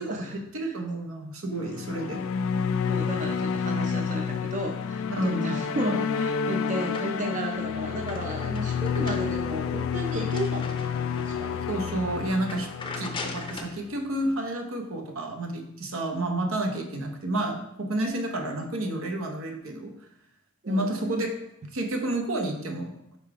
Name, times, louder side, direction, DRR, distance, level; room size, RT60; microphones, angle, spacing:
voice 1, 0.0-0.4 0.6-0.7 1.6-1.7 2.9-11.6 16.5-16.6 20.6-21.0, right 1 dB, 35° right, 3 dB, 0.5 m, -34 dB
voice 2, 0.5-2.2 5.2-5.6 11.7-20.0 20.7-21.4 21.7-23.2, right 1 dB, 75° right, 3 dB, 0.9 m, -30 dB
sound 1, 1.6-14.1, left 6 dB, 70° left, 0.3 m, -30 dB
sound 2, 6.8-7.4 7.8-11.4 11.9-12.0 12.4-13.8, left 3 dB, 25° left, 0.6 m, -41 dB
5.4 x 3.7 x 4.7 m, 0.78 s
head